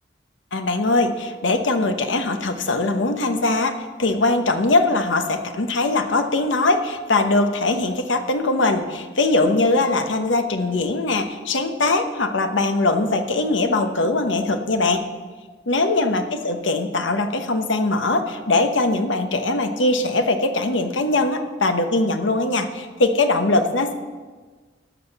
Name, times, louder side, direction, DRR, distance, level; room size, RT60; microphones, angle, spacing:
voice 1, 0.5-15.0 15.7-23.9, left 2 dB, 75° left, 7 dB, 1.0 m, -21 dB
13.0 x 6.5 x 6.6 m, 1.4 s
head